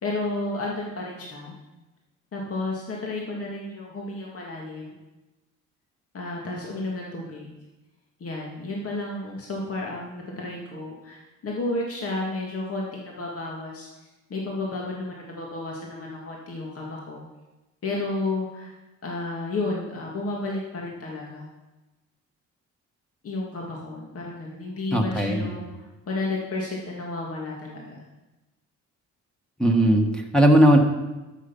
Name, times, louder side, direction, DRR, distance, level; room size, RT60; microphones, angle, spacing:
voice 1, 0.0-1.5 2.3-4.9 6.1-7.5 8.2-13.9 14.3-17.2 17.8-18.7 19.0-21.5 23.2-25.7 26.1-28.0, left 2 dB, 50° left, -2 dB, 2.1 m, -32 dB
voice 2, 24.9-25.5 29.6-30.8, right 1 dB, 5° left, 0 dB, 1.5 m, -18 dB
12.5 x 6.7 x 5.5 m, 1.1 s
cardioid pair, 90°, 30 cm